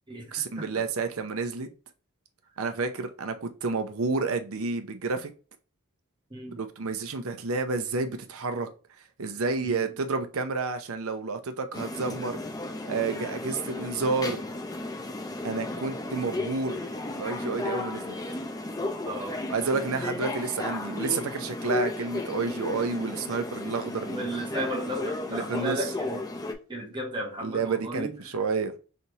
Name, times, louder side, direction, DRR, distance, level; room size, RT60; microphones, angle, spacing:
voice 1, 0.3-1.7 2.6-5.3 6.5-8.7 9.2-12.4 12.8-14.4 15.4-16.8 17.1-18.2 19.5-24.2 25.3-25.9 27.4-28.7, right 4 dB, 85° right, 0.7 m, -30 dB
sound 1, 11.7-26.5, left 2 dB, 20° left, 0.6 m, -34 dB
voice 2, 19.0-19.4 24.1-26.2 26.7-28.1, right 1 dB, 20° right, 1.4 m, -34 dB
4.1 x 3.4 x 2.9 m
head